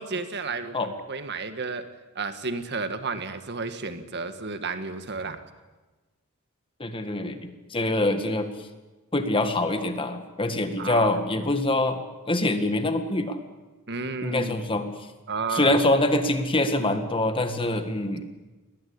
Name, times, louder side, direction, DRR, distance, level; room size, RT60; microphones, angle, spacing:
voice 1, 0.0-1.9 2.2-5.4 10.8-11.1 13.9-14.6 15.3-15.8, right 4 dB, 50° right, 9 dB, 1.8 m, -32 dB
voice 2, 6.8-8.5 9.1-12.0 12.3-13.4 14.2-14.9 15.5-18.3, left 1 dB, 25° left, 8 dB, 1.8 m, -25 dB
21.5 x 18.5 x 8.7 m, 1.2 s
head